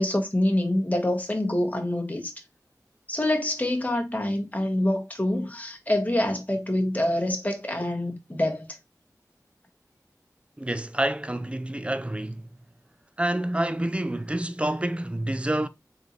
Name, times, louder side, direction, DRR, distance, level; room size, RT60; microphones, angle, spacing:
voice 1, 0.0-2.3 3.1-8.7, left 1 dB, 25° left, 1.3 m, -26 dB
voice 2, 10.6-12.5 13.2-15.7, right 1 dB, 15° right, 0.4 m, -28 dB
3.9 x 3.6 x 3.0 m
wide cardioid pair, 50°, 7 cm